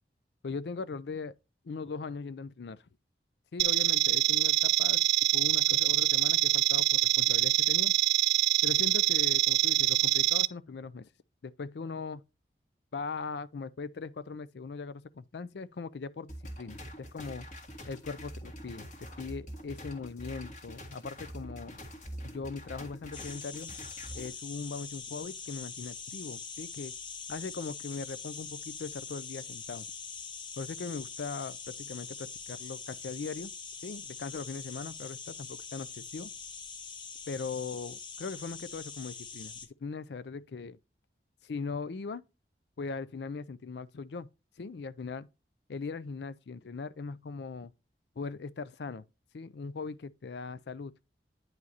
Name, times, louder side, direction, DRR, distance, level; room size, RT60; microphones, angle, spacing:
voice 1, 0.4-1.3 1.6-2.8 3.5-5.0 5.3-7.9 8.6-11.1 11.4-12.2 12.9-17.5 17.9-18.9 19.2-21.8 22.2-23.7 24.1-26.9 27.3-29.9 30.6-33.5 33.8-36.3 37.3-40.8 41.4-42.2 42.8-44.3 44.6-45.3 45.7-47.7 48.2-49.1 49.3-50.9, left 4 dB, 75° left, 0.4 m, -40 dB
sound 1, 3.6-10.5, right 18 dB, 75° right, 0.4 m, -25 dB
sound 2, 16.3-24.3, equal, 45° left, 1.7 m, -44 dB
sound 3, 23.1-39.7, left 6 dB, 25° left, 0.9 m, -43 dB
9.4 x 4.9 x 2.8 m
head